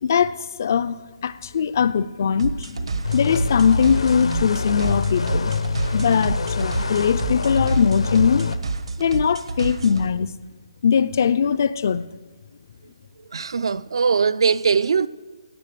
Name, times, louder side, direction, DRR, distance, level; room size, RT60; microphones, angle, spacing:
voice 1, 0.0-5.6 5.9-8.5 9.0-10.3 10.8-12.0, left 7 dB, 35° left, 0.3 m, -21 dB
sound 1, 2.4-10.1, right 4 dB, 80° right, 1.3 m, -29 dB
sound 2, 3.0-8.6, left 4 dB, 85° left, 0.9 m, -26 dB
voice 2, 13.3-15.1, right 5 dB, 60° right, 0.4 m, -20 dB
17.0 x 8.3 x 6.7 m
hypercardioid pair, 180°, 3 cm